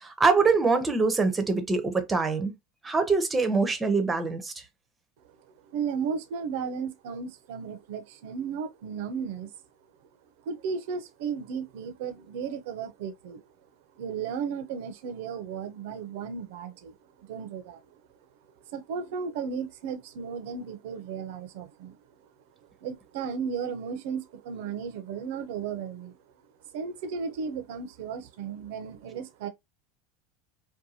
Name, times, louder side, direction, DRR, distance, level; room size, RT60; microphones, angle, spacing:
voice 1, 0.0-2.5 2.8-4.5, right 4 dB, 15° right, 0.6 m, -24 dB
voice 2, 5.6-9.5 10.4-13.4 13.9-18.0 18.7-22.0 22.8-26.2 26.7-29.5, right 6 dB, 75° right, 0.5 m, -35 dB
2.7 x 2.2 x 2.7 m
supercardioid pair, 130°, 0 cm